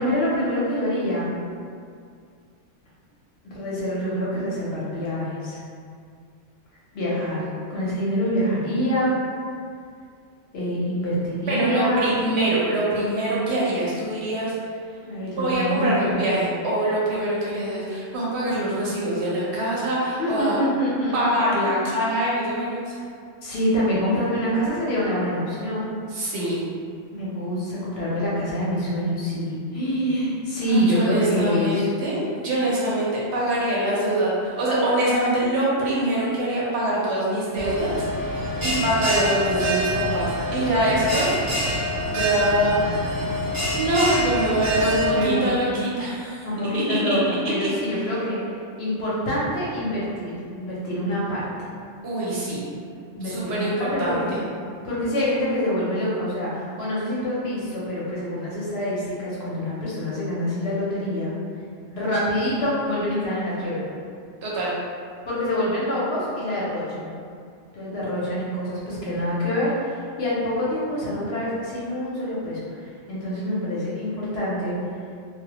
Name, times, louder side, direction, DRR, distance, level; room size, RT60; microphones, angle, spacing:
voice 1, 0.0-1.4 3.4-5.6 6.9-7.4 7.7-9.2 10.5-12.1 15.0-16.2 20.2-21.4 21.6-21.8 23.4-25.9 27.1-31.9 44.8-45.5 46.4-48.4 48.8-51.5 53.1-54.3 54.8-61.3 61.9-63.8 65.3-67.1 67.7-74.8, equal, 65° left, -7 dB, 0.7 m, -26 dB
voice 2, 11.5-14.7 15.4-20.6 21.1-23.0 26.1-26.6 30.7-32.2 32.4-41.3 42.1-42.8 43.7-46.5 46.7-48.2 52.0-52.6 53.2-54.4 64.4-64.7, right 1 dB, 70° right, -7 dB, 0.8 m, -24 dB
Bell, 37.6-45.1, equal, 35° right, 0.3 m, -25 dB
2.1 x 2.1 x 2.8 m, 2.3 s
omnidirectional pair, 1.3 m